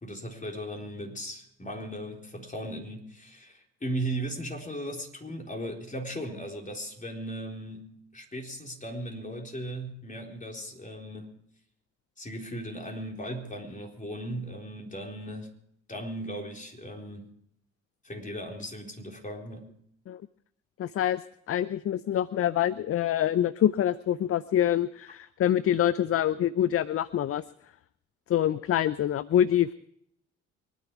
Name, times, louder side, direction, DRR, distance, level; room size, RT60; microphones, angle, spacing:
voice 1, 0.0-11.3 12.2-15.5 15.9-17.3 18.0-19.7, right 1 dB, 25° left, 1 dB, 4.0 m, -37 dB
voice 2, 20.8-21.2 21.5-27.4 28.3-29.7, left 11 dB, 45° left, 19 dB, 0.5 m, -25 dB
24.5 x 10.5 x 4.7 m, 0.70 s
hypercardioid pair, 45°, 33 cm